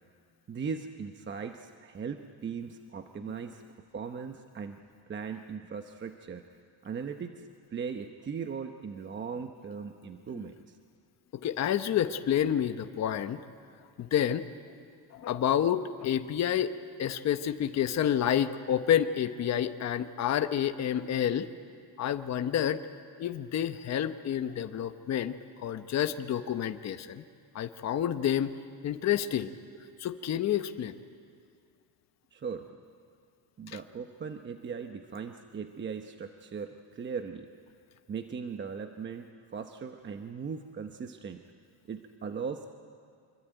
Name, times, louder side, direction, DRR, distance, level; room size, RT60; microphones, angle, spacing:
voice 1, 0.5-3.6 3.9-4.8 5.1-6.4 6.8-7.4 7.7-10.8 28.2-28.4 32.3-32.8 33.6-37.5 38.1-41.4 41.9-42.7, right 6 dB, 30° right, 6 dB, 0.9 m, -39 dB
voice 2, 11.4-13.4 14.0-14.5 15.1-16.7 17.0-21.5 22.0-22.8 23.2-27.2 27.5-28.5 28.8-29.5 30.0-30.9, left 10 dB, 40° left, 9 dB, 1.0 m, -29 dB
26.0 x 23.5 x 9.1 m, 2.2 s
cardioid pair, 150°, 39 cm